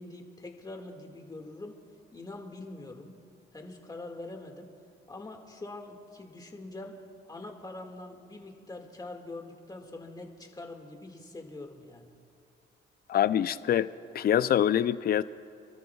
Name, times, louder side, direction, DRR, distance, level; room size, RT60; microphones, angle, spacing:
voice 1, 0.0-1.9 2.1-3.2 3.5-4.7 5.1-12.1, left 2 dB, 20° left, 2 dB, 1.9 m, -44 dB
voice 2, 13.1-13.9 14.1-15.2, left 10 dB, 50° left, 15 dB, 0.4 m, -25 dB
29.5 x 12.5 x 2.4 m, 2.7 s
cardioid pair, 90°, 20 cm